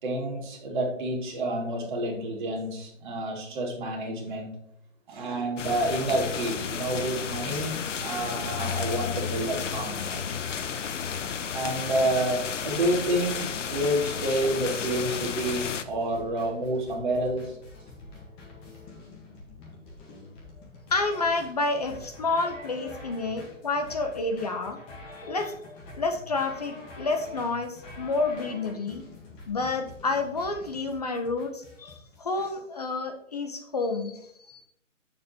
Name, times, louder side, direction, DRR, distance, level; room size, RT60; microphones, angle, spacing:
voice 1, 0.0-4.5 5.1-10.3 11.5-17.5 22.5-22.6, right 1 dB, 35° right, 0 dB, 2.1 m, -29 dB
sound 1, 5.6-15.8, left 7 dB, 65° left, 0.7 m, -32 dB
sound 2, 15.2-32.5, left 2 dB, 15° left, 1.1 m, -46 dB
voice 2, 20.9-24.8 25.2-29.0 29.5-34.2 34.5-34.6, left 3 dB, 30° left, 6 dB, 0.6 m, -29 dB
8.4 x 6.7 x 2.7 m, 0.72 s
hypercardioid pair, 150°, 39 cm